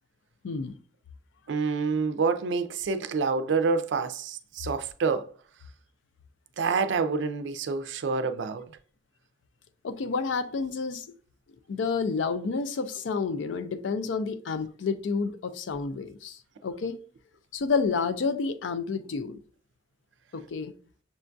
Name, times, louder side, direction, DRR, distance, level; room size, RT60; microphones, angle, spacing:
voice 1, 1.5-5.3 6.6-8.6, right 4 dB, 70° right, 0.4 m, -27 dB
voice 2, 9.8-11.1 11.7-17.0 17.5-19.4 20.3-20.7, left 4 dB, 75° left, 0.4 m, -30 dB
6.1 x 2.3 x 2.5 m
head